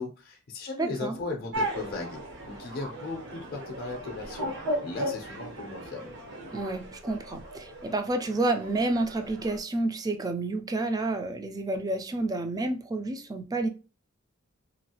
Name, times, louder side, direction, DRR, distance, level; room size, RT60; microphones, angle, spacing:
voice 1, 0.0-2.2 2.5-4.5 4.8-6.1, left 3 dB, 50° left, 0.5 m, -37 dB
voice 2, 0.8-1.2 6.5-13.7, right 2 dB, 20° right, 0.3 m, -29 dB
Bird, 1.0-6.5, equal, 90° right, 1.0 m, -37 dB
sound 1, 1.5-9.6, right 2 dB, 60° right, 0.8 m, -40 dB
3.0 x 2.3 x 2.8 m
head